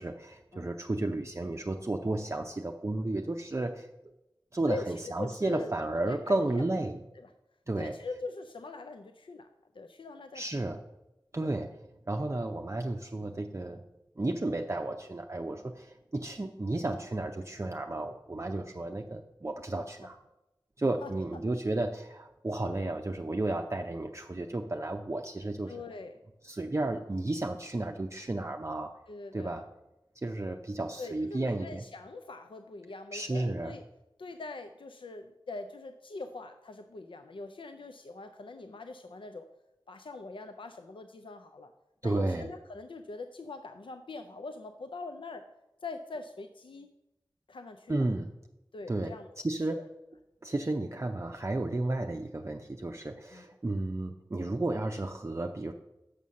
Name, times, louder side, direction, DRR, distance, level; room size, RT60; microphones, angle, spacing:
voice 1, 0.0-3.9 4.5-7.0 7.7-8.0 10.3-10.8 11.3-11.7 12.1-13.8 14.2-20.2 20.8-25.7 26.4-28.9 29.3-29.6 30.2-31.8 33.1-33.7 42.0-42.5 47.9-48.3 48.9-49.1 49.4-49.8 50.4-55.7, right 2 dB, 35° right, 3 dB, 0.5 m, -33 dB
voice 2, 4.7-5.7 6.0-6.6 7.2-7.3 7.8-9.5 9.7-10.6 11.4-11.5 21.0-21.1 25.7-26.2 29.1-29.6 31.0-33.8 34.2-39.5 39.9-41.7 42.0-45.5 45.8-46.9 47.5-48.1 48.7-49.3 49.7-49.9 53.3-53.4, left 3 dB, 90° left, 7 dB, 0.4 m, -42 dB
6.6 x 5.5 x 6.2 m, 0.95 s
wide cardioid pair, 50°, 8 cm